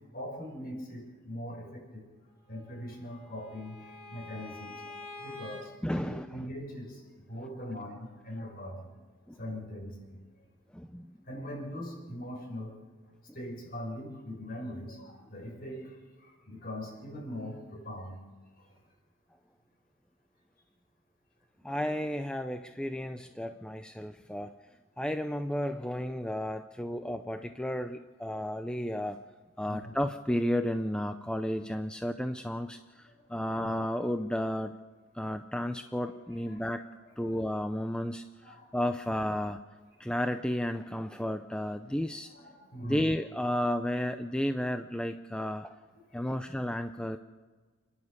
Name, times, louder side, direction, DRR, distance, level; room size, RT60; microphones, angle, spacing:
voice 1, 0.1-2.1 2.5-5.8 6.0-8.9 9.4-10.2 11.0-12.8 13.3-18.2 18.6-18.8 29.6-29.9 33.1-33.2 36.0-36.8 37.2-37.4 38.4-38.7 42.2-43.1 45.9-46.3, left 1 dB, 45° left, 1 dB, 6.4 m, -42 dB
Bowed string instrument, 2.5-5.7, left 2 dB, 30° left, 3.7 m, -47 dB
voice 2, 5.8-6.3 9.3-9.4 10.7-11.2 21.6-24.5 25.0-29.2 29.6-34.7 35.1-36.8 37.2-39.6 40.0-42.3 42.8-45.7 46.1-47.2, left 1 dB, 5° left, 7 dB, 0.5 m, -33 dB
29.0 x 11.0 x 8.1 m, 1.4 s
head